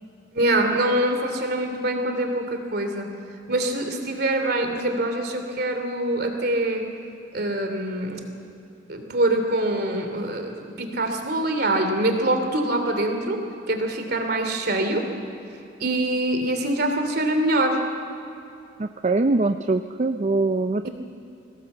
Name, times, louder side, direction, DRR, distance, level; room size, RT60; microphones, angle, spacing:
voice 1, 0.3-3.1 3.5-6.8 7.3-8.2 8.9-13.4 13.7-15.1 15.8-17.8 20.8-20.9, right 1 dB, 55° right, 5 dB, 2.9 m, -24 dB
voice 2, 18.8-20.9, right 3 dB, 35° right, 9 dB, 0.5 m, -23 dB
22.5 x 17.5 x 8.0 m, 2.7 s
head